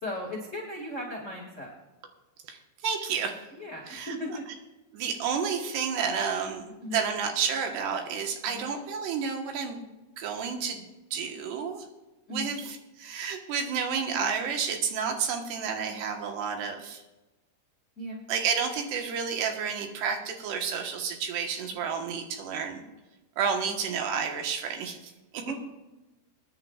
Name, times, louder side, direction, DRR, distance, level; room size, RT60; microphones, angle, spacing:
voice 1, 0.0-1.7 3.5-4.3 6.8-7.0 8.5-8.7 12.3-12.5 18.0-18.2 25.4-25.5, left 1 dB, 35° left, -2 dB, 1.1 m, -36 dB
voice 2, 2.5-3.5 3.9-4.4 4.9-9.8 10.2-10.8 11.1-11.9 12.3-17.0 18.3-22.8 23.4-25.4, right 6 dB, 75° right, 4 dB, 3.4 m, -31 dB
23.5 x 10.5 x 2.4 m, 1.1 s
omnidirectional pair, 5.0 m